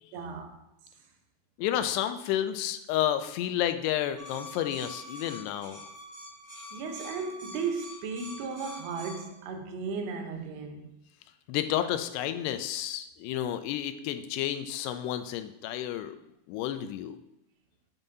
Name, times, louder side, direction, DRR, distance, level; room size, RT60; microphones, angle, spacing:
voice 1, 0.1-0.6 6.7-10.9, right 5 dB, 85° right, 3.0 m, -35 dB
voice 2, 1.6-5.8 11.5-16.2 16.5-17.2, left 11 dB, 90° left, 2.7 m, -31 dB
sound 1, 4.2-9.2, equal, 10° right, 1.8 m, -45 dB
12.5 x 5.4 x 2.7 m
omnidirectional pair, 4.7 m